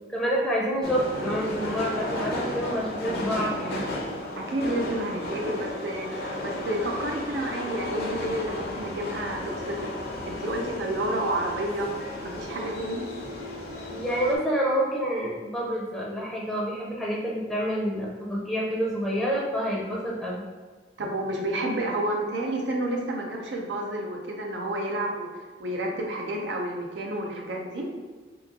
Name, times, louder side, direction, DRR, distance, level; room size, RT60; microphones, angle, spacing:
voice 1, 0.0-3.8 13.9-20.5, equal, ahead, -5 dB, 0.5 m, -28 dB
sound 1, 0.8-14.4, left 1 dB, 60° left, 0.6 m, -34 dB
voice 2, 4.4-9.9 10.2-11.9 12.2-13.1 21.0-25.3 25.6-27.9, right 1 dB, 90° right, 1 dB, 0.6 m, -30 dB
3.0 x 2.3 x 3.6 m, 1.4 s
head